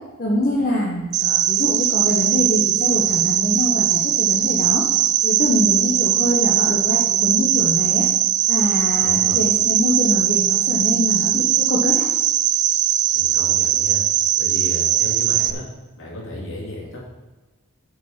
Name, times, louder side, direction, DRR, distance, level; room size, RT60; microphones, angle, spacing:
voice 1, 0.2-4.9 5.2-8.1 8.5-12.0, left 1 dB, 45° left, -3 dB, 1.3 m, -24 dB
Cricket, 1.1-15.5, right 11 dB, 55° right, 0.5 m, -19 dB
voice 2, 9.0-9.4 13.1-14.0 14.4-15.6 16.0-17.1, left 1 dB, 65° left, -4 dB, 3.3 m, -33 dB
9.1 x 6.1 x 5.8 m, 1.2 s
head